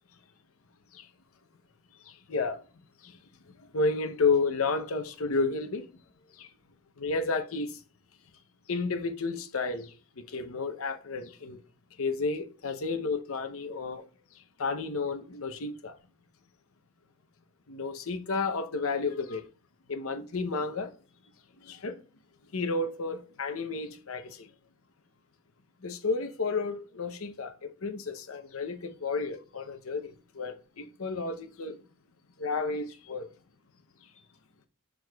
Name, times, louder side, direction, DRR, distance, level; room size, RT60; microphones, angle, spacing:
voice 1, 2.0-2.6 3.0-3.2 3.6-5.9 6.4-6.5 7.0-7.8 8.7-11.6 12.0-14.0 14.3-16.0 17.7-19.5 19.9-20.9 21.6-22.0 22.5-24.5 25.8-31.8 32.4-33.3, left 4 dB, 70° left, 0.8 m, -32 dB
6.9 x 6.1 x 2.3 m
head